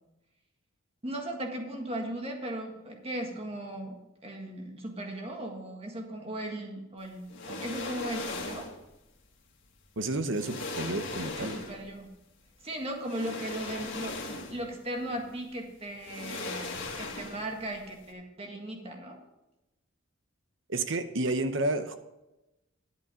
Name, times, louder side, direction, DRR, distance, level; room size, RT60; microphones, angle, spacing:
voice 1, 1.0-8.7 11.4-12.1 12.6-19.2, right 1 dB, 30° right, 2 dB, 1.7 m, -37 dB
sound 1, 7.3-8.8 9.9-10.0 10.3-11.9 13.0-14.7 15.1-15.2 16.0-17.6 17.9-18.0, left 3 dB, 60° left, 2.1 m, -38 dB
voice 2, 10.0-11.6 20.7-22.0, right 2 dB, 60° right, 9 dB, 0.9 m, -30 dB
11.0 x 8.4 x 5.0 m, 0.97 s
head